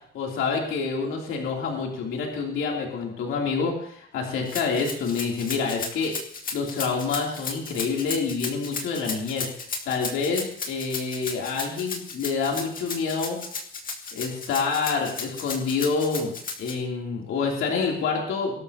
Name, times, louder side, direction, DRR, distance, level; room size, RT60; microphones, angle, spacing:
voice 1, 0.1-6.2 6.5-9.5 9.8-13.4 14.1-16.3 16.6-18.6, left 5 dB, 90° left, -1 dB, 3.1 m, -27 dB
Rattle (instrument), 4.5-16.7, left 4 dB, 45° left, 2.2 m, -34 dB
23.5 x 12.5 x 2.9 m, 0.65 s
cardioid pair, 115°, 20 cm